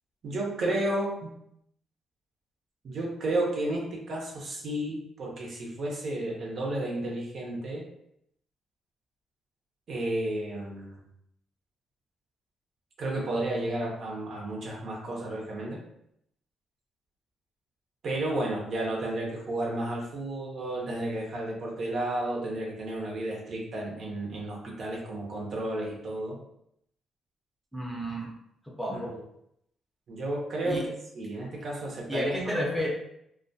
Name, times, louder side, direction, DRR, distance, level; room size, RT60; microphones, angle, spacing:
voice 1, 0.2-1.3 2.8-7.8 9.9-11.0 13.0-15.8 18.0-26.4 28.9-29.2 30.1-32.3 32.7-32.8, right 1 dB, 55° right, -2 dB, 0.6 m, -32 dB
voice 2, 27.7-28.3 28.8-29.1 30.6-30.8 32.1-32.9, equal, ahead, -3 dB, 0.7 m, -31 dB
2.2 x 2.2 x 2.6 m, 0.74 s
cardioid pair, 90°, 0 cm